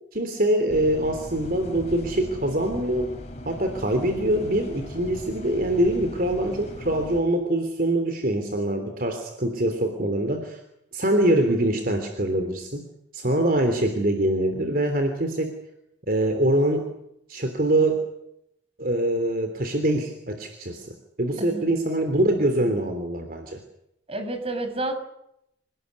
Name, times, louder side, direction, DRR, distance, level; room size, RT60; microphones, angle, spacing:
voice 1, 0.1-3.1 3.5-10.6 10.9-12.9 13.1-15.5 16.1-16.9 17.3-18.0 18.8-23.6, right 1 dB, 50° right, 6 dB, 3.3 m, -24 dB
sound 1, 0.7-7.2, equal, 40° left, 5.3 m, -39 dB
voice 2, 21.4-21.7 24.1-25.0, right 2 dB, 35° right, 7 dB, 5.7 m, -30 dB
27.5 x 19.5 x 9.6 m, 0.80 s
head